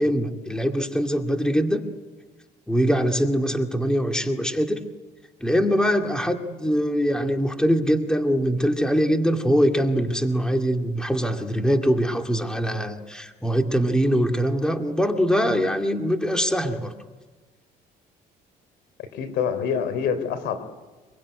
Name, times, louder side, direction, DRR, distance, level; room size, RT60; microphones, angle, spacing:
voice 1, 0.0-1.8 2.7-4.8 5.4-16.9, equal, 5° left, 4 dB, 2.2 m, -23 dB
voice 2, 19.0-20.6, left 7 dB, 85° left, 11 dB, 3.5 m, -26 dB
25.0 x 22.5 x 9.6 m, 1.3 s
cardioid pair, 110°, 17 cm